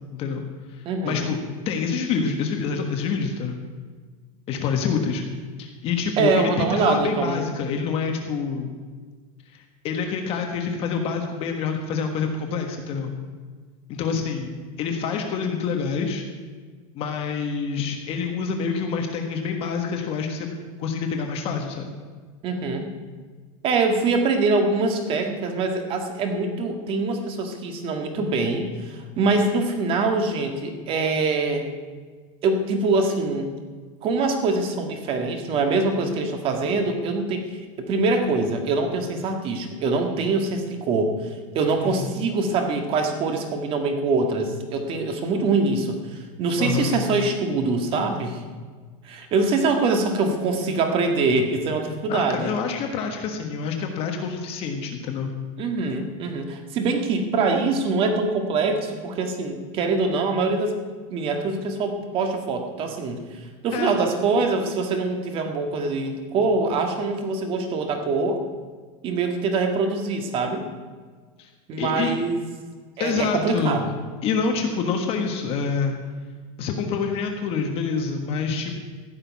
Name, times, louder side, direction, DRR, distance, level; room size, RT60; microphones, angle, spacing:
voice 1, 0.1-0.4 0.7-1.4 1.6-3.6 4.5-5.2 5.6-8.7 9.5-13.1 13.9-14.5 14.8-16.2 16.9-20.5 20.8-21.9 41.8-42.1 46.6-46.9 52.1-55.3 63.7-64.0 71.4-71.5 71.8-72.1 73.0-73.8 74.2-75.9 76.6-78.7, left 5 dB, 35° left, 4 dB, 1.4 m, -27 dB
voice 2, 0.9-1.3 6.2-7.5 22.4-22.9 23.6-31.6 32.4-33.5 34.0-37.5 37.8-41.1 41.5-48.4 49.0-52.5 55.6-60.7 61.1-68.4 69.0-70.6 71.7-72.4 73.0-74.0, right 3 dB, 30° right, 5 dB, 1.8 m, -24 dB
15.0 x 6.7 x 9.4 m, 1.5 s
supercardioid pair, 160°, 18 cm